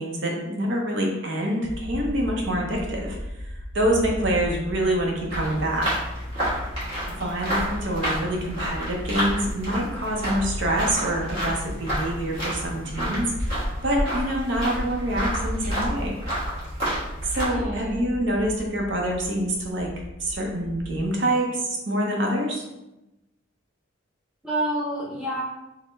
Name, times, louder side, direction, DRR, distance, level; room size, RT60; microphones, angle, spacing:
voice 1, 0.0-3.2 3.4-5.9 7.1-16.2 17.2-19.9 20.2-22.6, right 1 dB, 60° right, -1 dB, 0.7 m, -26 dB
sound 1, 1.6-21.0, equal, 55° left, 0.5 m, -37 dB
sound 2, 5.3-17.5, equal, 30° right, 1.5 m, -30 dB
voice 2, 17.4-17.9 24.4-25.4, right 1 dB, 5° right, -5 dB, 0.7 m, -28 dB
4.0 x 2.1 x 3.8 m, 0.96 s
head